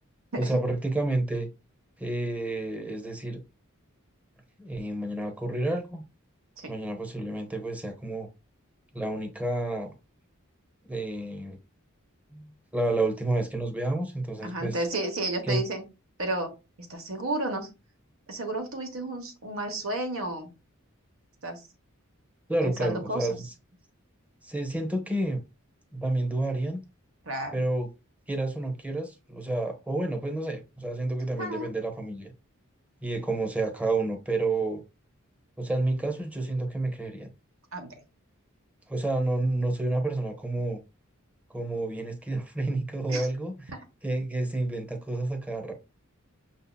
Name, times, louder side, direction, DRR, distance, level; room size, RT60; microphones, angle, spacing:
voice 1, 0.4-1.5 2.0-3.4 4.6-6.0 6.7-8.3 8.9-9.9 10.8-11.6 12.3-14.8 15.4-15.6 22.5-23.5 24.4-25.4 25.9-26.8 27.5-27.9 28.3-32.3 33.0-34.8 35.6-37.3 38.9-40.8 41.5-43.5 44.0-45.7, right 2 dB, 5° right, 0.8 m, -30 dB
voice 2, 14.4-15.8 16.2-16.5 16.9-17.7 18.3-20.5 21.4-21.6 22.6-23.3 27.3-27.5 31.4-31.7 37.7-37.9 43.1-43.3 43.7-43.8, right 2 dB, 70° right, 1.1 m, -32 dB
6.1 x 2.7 x 2.3 m
head